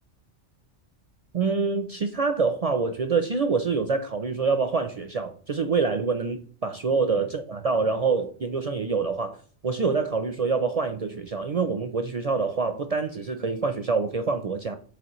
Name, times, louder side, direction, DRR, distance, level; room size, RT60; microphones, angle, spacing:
voice 1, 1.3-14.8, right 4 dB, 55° right, 0.4 m, -26 dB
8.0 x 4.0 x 3.0 m
omnidirectional pair, 1.2 m